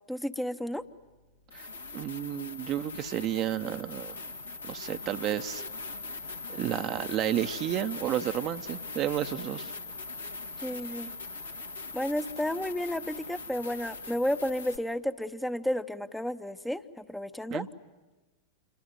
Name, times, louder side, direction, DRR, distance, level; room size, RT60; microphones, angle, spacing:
voice 1, 0.1-0.8 10.6-11.1 11.9-17.6, left 1 dB, 5° left, 10 dB, 0.8 m, -32 dB
sound 1, 0.8-0.9 1.5-14.8, left 3 dB, 75° left, 1.7 m, -41 dB
voice 2, 1.9-4.1 4.7-5.6 6.5-9.7 17.5-17.7, right 12 dB, 35° right, 9 dB, 0.9 m, -31 dB
27.5 x 23.5 x 9.1 m, 1.2 s
figure-of-eight pair, 90°, 0 cm